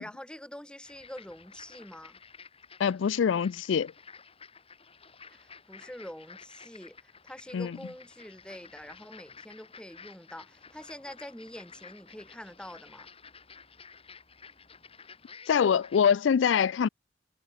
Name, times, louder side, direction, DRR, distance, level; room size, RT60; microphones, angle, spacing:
voice 1, 0.0-2.2 5.3-13.1, left 1 dB, 5° left, 1.6 m, -45 dB
sound 1, 0.8-16.2, left 5 dB, 30° left, 6.3 m, -52 dB
voice 2, 2.8-3.9 7.5-7.7 15.5-16.9, left 7 dB, 90° left, 0.4 m, -24 dB
head